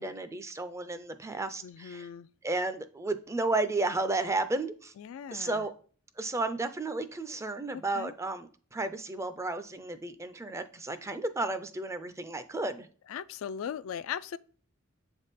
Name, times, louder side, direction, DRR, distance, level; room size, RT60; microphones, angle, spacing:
voice 1, 0.0-2.1 2.4-4.9 5.3-5.7 6.2-12.9, right 2 dB, 15° right, 0.4 m, -33 dB
voice 2, 1.6-2.3 5.0-5.6 7.7-8.1 13.1-14.4, left 8 dB, 70° left, 0.3 m, -39 dB
7.4 x 3.6 x 4.1 m
head